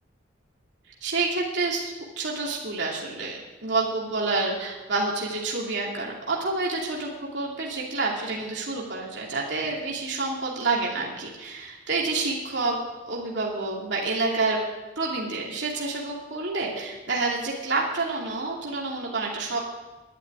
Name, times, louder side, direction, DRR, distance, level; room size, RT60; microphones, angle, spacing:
voice 1, 1.0-12.8 13.1-14.6 15.0-19.6, right 3 dB, 70° right, -3 dB, 2.7 m, -28 dB
11.5 x 8.3 x 9.5 m, 1.1 s
head